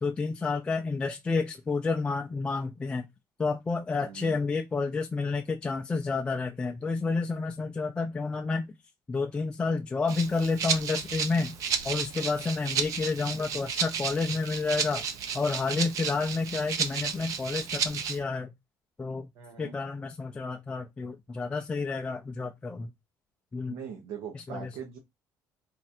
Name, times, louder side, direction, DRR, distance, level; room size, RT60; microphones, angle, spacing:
voice 1, 0.0-3.1 3.4-8.7 9.1-11.6 11.8-15.0 15.3-18.5 19.0-19.3 19.6-22.9 23.5-23.7 24.3-24.7, left 4 dB, 15° left, 0.4 m, -30 dB
voice 2, 4.0-4.4 19.3-19.8 23.7-25.0, right 7 dB, 85° right, 1.0 m, -41 dB
Rattle (instrument), 10.1-18.2, right 7 dB, 50° right, 0.5 m, -32 dB
4.2 x 2.4 x 4.2 m
cardioid pair, 165°, 7 cm